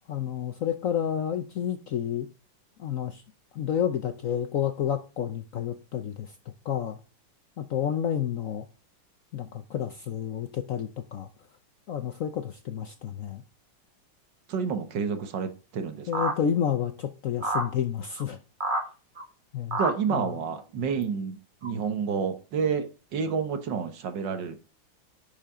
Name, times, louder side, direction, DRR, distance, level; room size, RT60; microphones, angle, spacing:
voice 1, 0.1-2.3 2.8-3.2 3.5-6.3 6.6-7.0 7.6-8.7 9.3-11.3 11.9-13.4 16.1-18.4 19.5-19.8 20.1-20.4, left 9 dB, 60° left, 0.8 m, -30 dB
voice 2, 14.5-16.1 19.8-22.9 23.1-24.6, right 6 dB, 70° right, 1.8 m, -29 dB
sound 1, 16.1-16.3 17.4-17.7 18.2-18.3 18.6-18.8 19.2-19.3 19.7-19.9 21.0-21.1 21.6-21.7, right 2 dB, 30° right, 1.5 m, -27 dB
10.5 x 5.8 x 3.7 m
omnidirectional pair, 2.1 m